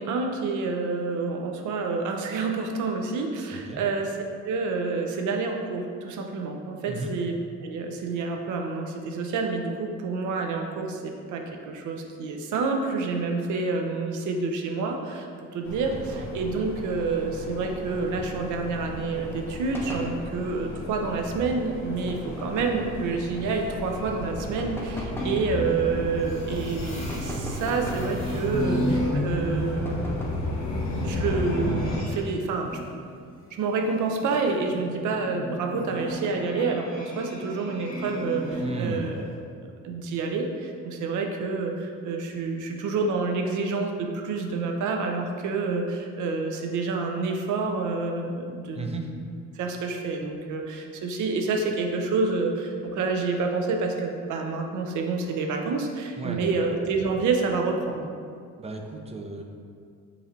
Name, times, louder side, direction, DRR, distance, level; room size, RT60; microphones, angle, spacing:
voice 1, 0.0-4.2 4.4-7.3 7.6-30.2 31.0-32.8 33.5-39.3 39.8-49.2 49.5-58.1, right 4 dB, 75° right, 3 dB, 0.6 m, -28 dB
sound 1, 15.6-32.0, left 1 dB, 70° left, 0.8 m, -34 dB
voice 2, 15.9-16.3 38.6-39.1 48.8-49.1 56.2-56.5 58.6-59.4, right 3 dB, 20° right, 3 dB, 0.4 m, -34 dB
sound 2, 19.7-20.2 22.1-22.8 24.4-25.4 27.1-28.1 29.8-30.5, equal, 5° left, 0.7 m, -37 dB
sound 3, 25.2-32.2 32.5-39.3, equal, 45° left, 1.4 m, -35 dB
4.9 x 3.2 x 2.7 m, 2.2 s
cardioid pair, 90°, 30 cm